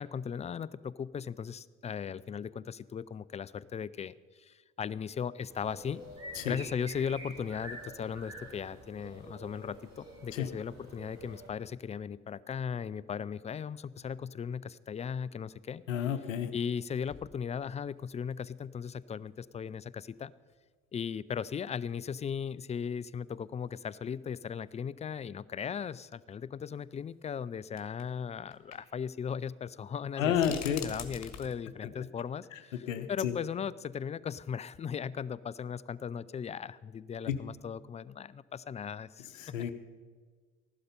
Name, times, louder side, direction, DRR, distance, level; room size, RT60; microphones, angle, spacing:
voice 1, 0.0-6.0 6.5-15.8 16.5-20.3 20.9-39.6, left 7 dB, 20° left, 18 dB, 0.4 m, -37 dB
sound 1, 5.5-11.5, right 1 dB, 45° right, 4.2 m, -48 dB
sound 2, 15.8-15.9 16.6-16.7 17.0-18.0 18.6-18.7 20.5-20.6 21.9-22.0 22.2-22.3 23.3-23.4 23.7-23.8 25.2-25.3 26.8-26.9 27.8-28.1 28.5-28.8 29.1-29.2 30.3-31.5, left 8 dB, 45° left, 1.6 m, -45 dB
voice 2, 15.9-16.5 30.2-30.8 31.8-31.9 32.7-33.3 37.3-37.4 39.4-39.7, left 9 dB, 85° left, 9 dB, 0.8 m, -31 dB
15.5 x 12.0 x 5.3 m, 1.5 s
hypercardioid pair, 55°, 38 cm